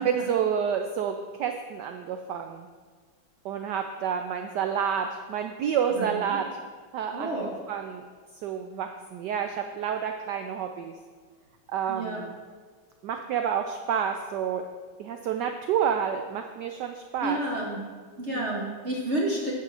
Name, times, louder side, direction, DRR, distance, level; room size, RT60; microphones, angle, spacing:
voice 1, 0.0-2.7 3.4-6.6 6.9-8.0 8.4-10.9 11.7-12.4 13.0-14.7 15.0-17.4 18.3-18.8, right 8 dB, 75° right, 6 dB, 1.0 m, -29 dB
voice 2, 6.0-6.4 7.1-7.6 11.9-12.2 17.2-17.8 18.2-19.5, right 1 dB, 45° right, -2 dB, 1.1 m, -30 dB
9.5 x 5.1 x 6.4 m, 1.5 s
omnidirectional pair, 2.2 m